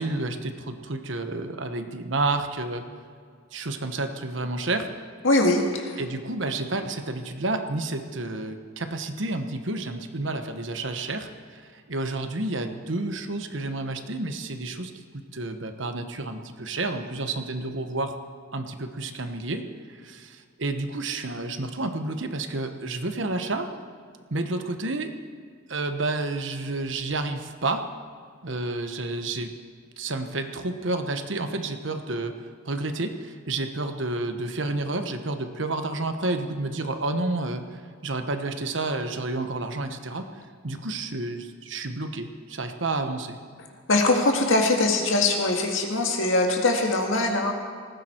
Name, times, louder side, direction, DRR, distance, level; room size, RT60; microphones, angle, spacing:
voice 1, 0.0-2.8 3.5-4.9 6.0-18.1 18.5-23.7 24.3-25.1 25.7-27.9 28.4-29.5 30.0-32.3 32.6-40.3 40.6-43.4, right 2 dB, 65° right, 7 dB, 1.2 m, -30 dB
voice 2, 5.2-6.0 43.9-47.5, left 2 dB, 75° left, 2 dB, 2.1 m, -22 dB
19.0 x 15.5 x 4.5 m, 2.1 s
head